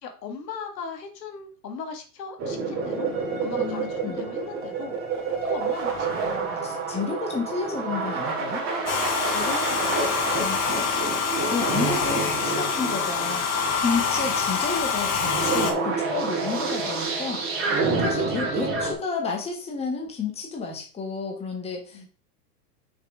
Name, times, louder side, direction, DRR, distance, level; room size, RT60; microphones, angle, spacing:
voice 1, 0.0-3.1 3.4-5.0 5.4-6.8 9.0-10.6 14.2-14.3 21.9-22.1, left 5 dB, 85° left, 4 dB, 2.1 m, -38 dB
sound 1, 2.4-18.9, right 4 dB, 25° right, 2.1 m, -29 dB
voice 2, 3.6-4.2 6.6-8.6 10.4-10.6 11.2-13.5 13.8-17.4 18.0-22.0, left 4 dB, 10° left, 1 dB, 1.4 m, -31 dB
Domestic sounds home sounds, 8.9-15.7, left 5 dB, 30° left, 1.6 m, -26 dB
6.1 x 4.9 x 4.9 m, 0.38 s
hypercardioid pair, 145°, 48 cm